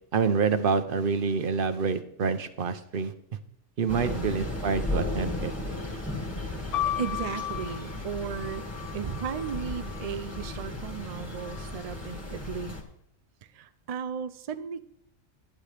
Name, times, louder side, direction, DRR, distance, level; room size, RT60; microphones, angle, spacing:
voice 1, 0.1-3.1 3.8-5.5, right 5 dB, 50° right, 11 dB, 0.8 m, -27 dB
Thunder / Rain, 3.9-12.8, left 2 dB, 10° left, 1.8 m, -35 dB
voice 2, 4.1-4.5 6.5-8.7 8.9-12.8 13.5-14.8, right 7 dB, 75° right, 10 dB, 0.3 m, -35 dB
sound 1, 6.7-10.6 11.4-12.1, left 12 dB, 70° left, 0.9 m, -36 dB
11.5 x 10.5 x 3.3 m, 0.73 s
omnidirectional pair, 1.4 m